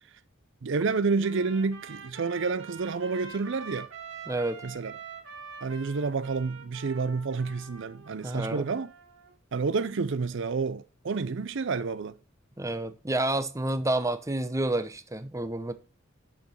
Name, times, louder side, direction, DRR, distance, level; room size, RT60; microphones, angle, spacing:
voice 1, 0.6-3.9 4.6-4.9 5.6-8.9 9.5-12.1, right 4 dB, 65° right, 0.5 m, -29 dB
Trumpet, 1.2-9.3, right 5 dB, 90° right, 2.7 m, -46 dB
voice 2, 4.3-4.6 8.2-8.7 12.6-15.7, right 2 dB, 15° right, 0.7 m, -29 dB
6.8 x 6.1 x 7.2 m
head